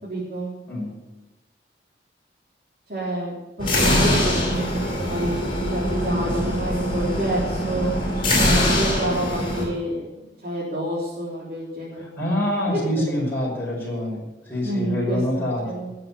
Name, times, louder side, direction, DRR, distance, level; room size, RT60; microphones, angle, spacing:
voice 1, 0.0-0.5 2.9-5.4 5.7-7.9 8.4-12.1 12.7-13.3 14.6-15.9, right 1 dB, 50° right, -6 dB, 3.8 m, -28 dB
sound 1, 3.6-9.6, left 1 dB, 30° left, 5.3 m, -23 dB
voice 2, 12.0-15.6, left 1 dB, 10° left, -4 dB, 5.4 m, -26 dB
19.0 x 7.7 x 7.1 m, 1.0 s
head